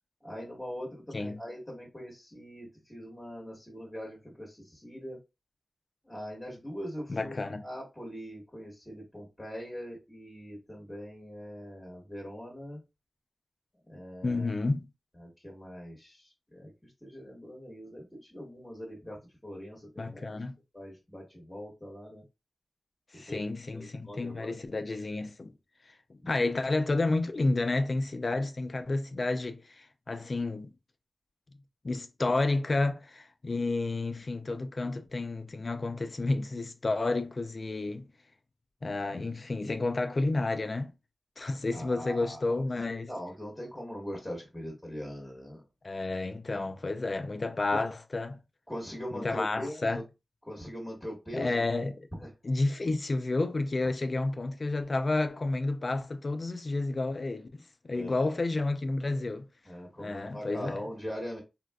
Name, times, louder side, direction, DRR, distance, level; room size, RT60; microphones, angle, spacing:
voice 1, 0.2-5.2 6.0-12.8 13.9-14.5 15.2-20.4 20.7-22.2 23.1-23.4 23.7-24.5 26.2-26.3 41.7-42.6 43.1-45.6 47.7-47.8 48.7-50.0 50.5-51.6 52.2-52.3 57.9-58.3 59.6-61.4, equal, 10° left, 1.5 m, -42 dB
voice 2, 7.1-7.6 14.2-14.9 20.0-20.6 23.1-25.5 26.1-30.7 31.8-38.1 38.8-40.9 41.4-43.1 45.8-48.4 49.1-50.0 51.3-51.9 52.4-59.5 60.0-60.8, left 2 dB, 50° left, 0.5 m, -31 dB
3.8 x 2.4 x 2.3 m
wide cardioid pair, 70°, 0 cm